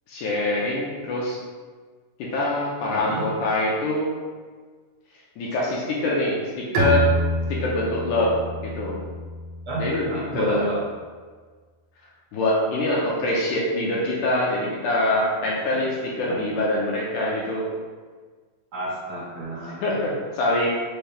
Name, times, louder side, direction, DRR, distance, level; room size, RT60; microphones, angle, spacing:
voice 1, 0.1-1.4 2.2-4.1 5.4-7.1 7.5-8.3 8.6-9.0 9.8-10.7 12.3-17.7 19.8-20.7, left 1 dB, 75° left, -4 dB, 2.0 m, -24 dB
voice 2, 2.9-3.2 9.7-10.7 15.7-15.8 16.3-16.4 18.7-19.8, right 1 dB, 55° right, -9 dB, 1.7 m, -31 dB
Bowed string instrument, 6.7-10.2, equal, 80° right, 1.6 m, -27 dB
5.7 x 2.7 x 3.3 m, 1.5 s
omnidirectional pair, 3.9 m